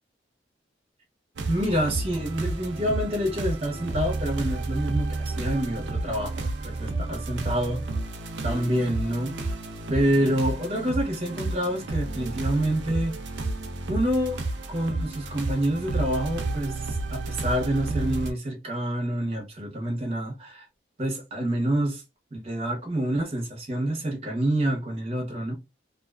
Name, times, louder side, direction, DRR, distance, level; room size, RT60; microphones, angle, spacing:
sound 1, 1.4-18.3, right 2 dB, 70° right, 0.5 m, -31 dB
voice 1, 1.5-7.8 8.4-9.3 9.9-13.1 13.9-14.4 14.7-20.7 21.0-22.0 22.3-25.5, right 1 dB, 30° right, 0.8 m, -27 dB
2.5 x 2.3 x 2.3 m
head